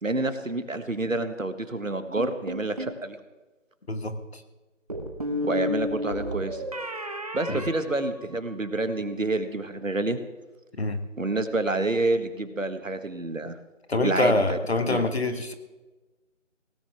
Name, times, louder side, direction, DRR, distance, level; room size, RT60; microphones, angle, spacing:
voice 1, 0.0-3.2 5.4-6.7 7.3-10.2 11.2-13.6 14.0-15.1, right 2 dB, 80° right, 9 dB, 1.7 m, -28 dB
sound 1, 2.2-3.0 4.9-8.7, left 1 dB, 30° right, 1.3 m, -32 dB
voice 2, 3.9-4.4 7.5-7.6 10.8-11.0 13.9-15.5, left 2 dB, 55° left, 9 dB, 1.5 m, -26 dB
17.5 x 17.0 x 3.5 m, 1.2 s
figure-of-eight pair, 165°, 39 cm